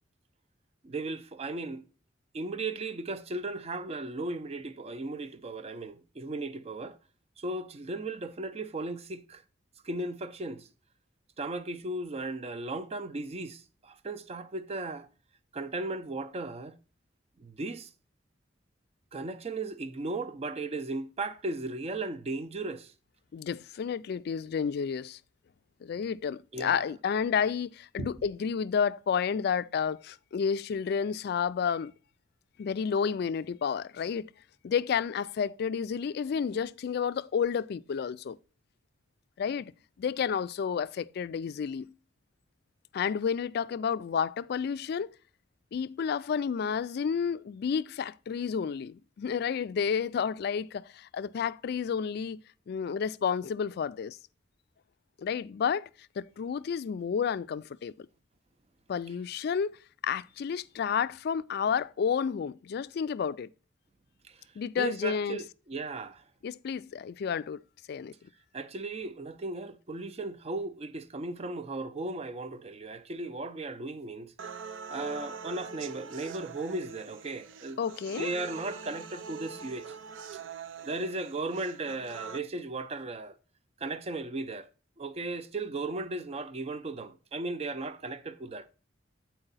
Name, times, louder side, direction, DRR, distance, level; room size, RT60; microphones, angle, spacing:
voice 1, 0.8-1.8 2.3-7.0 7.4-9.4 9.8-10.7 11.4-15.1 15.5-16.8 17.4-17.9 19.1-22.9 26.5-26.9 28.0-28.1 64.3-64.4 64.8-66.2 68.5-74.3 74.9-77.8 78.1-80.0 80.8-83.4 83.8-84.7 85.0-88.7, right 2 dB, 35° right, 0.5 m, -36 dB
voice 2, 23.3-25.2 25.8-31.9 32.6-34.3 34.6-38.4 39.4-39.7 40.0-41.9 42.9-45.1 45.7-54.2 55.2-55.9 56.2-58.1 58.9-59.8 60.0-63.5 64.6-65.4 66.4-67.6 67.9-68.1 77.8-78.3, left 7 dB, 55° left, 0.3 m, -31 dB
sound 1, 74.4-82.4, right 5 dB, 80° right, 0.5 m, -43 dB
8.8 x 4.5 x 4.0 m
head